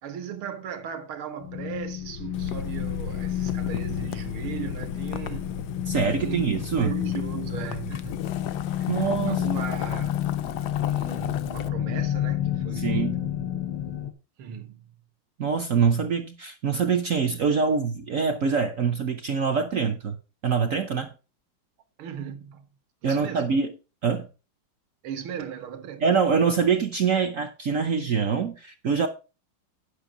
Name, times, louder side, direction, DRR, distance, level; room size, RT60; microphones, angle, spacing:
voice 1, 0.0-5.5 6.1-6.4 6.8-8.3 8.8-10.2 10.6-13.1 14.4-15.0 22.0-22.6 23.0-23.5 25.0-26.0, right 8 dB, 80° right, 2.0 m, -37 dB
sound 1, 1.4-14.1, left 10 dB, 85° left, 1.9 m, -30 dB
Boiling, 2.3-11.7, left 10 dB, 70° left, 1.0 m, -37 dB
voice 2, 5.9-6.9 8.9-9.5 12.7-13.2 15.4-20.2 20.4-21.1 23.0-23.7 24.0-24.3 26.0-29.1, right 6 dB, 60° right, 0.8 m, -24 dB
10.0 x 6.0 x 4.9 m
omnidirectional pair, 2.3 m